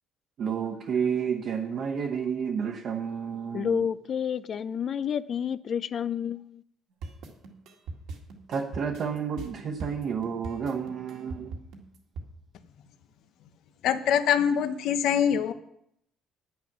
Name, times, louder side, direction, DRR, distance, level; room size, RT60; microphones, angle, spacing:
voice 1, 0.4-3.8 8.5-11.5, right 7 dB, 55° right, 1.0 m, -30 dB
voice 2, 3.5-6.6, left 7 dB, 45° left, 0.4 m, -30 dB
sound 1, 7.0-12.3, right 4 dB, 85° right, 2.0 m, -40 dB
voice 3, 13.8-15.5, left 8 dB, 75° left, 0.8 m, -24 dB
10.0 x 9.2 x 6.1 m
cardioid pair, 140°, 0 cm